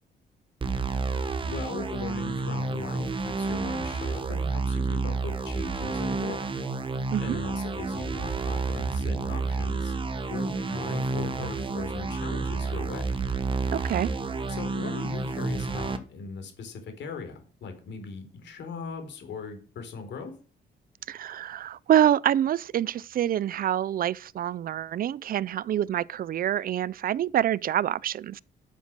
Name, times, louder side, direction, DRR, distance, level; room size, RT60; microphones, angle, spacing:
sound 1, 0.6-16.0, right 3 dB, 30° right, 1.4 m, -30 dB
voice 1, 1.5-6.5 7.2-9.9 10.3-13.2 14.5-20.3, left 4 dB, 80° left, 4.0 m, -39 dB
voice 2, 13.7-14.1 21.1-28.4, right 11 dB, 50° right, 0.5 m, -26 dB
12.0 x 7.4 x 6.2 m
cardioid pair, 145°, 18 cm